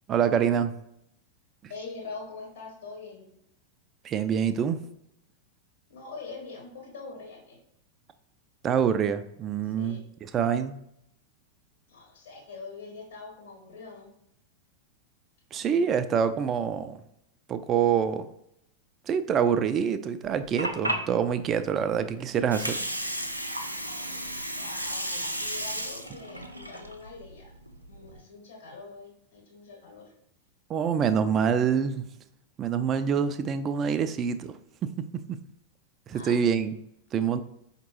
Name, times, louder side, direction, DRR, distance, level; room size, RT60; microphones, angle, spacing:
voice 1, 0.1-0.7 4.0-4.8 8.6-10.8 15.5-17.0 17.5-18.3 19.1-22.8 30.7-32.0 32.6-34.5 34.8-35.4 36.1-36.7 37.1-37.4, right 7 dB, 30° right, 11 dB, 0.3 m, -26 dB
voice 2, 1.7-3.3 5.9-7.6 9.6-10.0 11.9-14.1 24.5-27.5 27.9-30.1 36.1-36.5, left 4 dB, 65° left, -2 dB, 1.7 m, -43 dB
Water, 20.2-28.2, right 1 dB, 90° right, 0.4 m, -34 dB
5.0 x 2.9 x 3.0 m, 0.76 s
figure-of-eight pair, 90°, 0 cm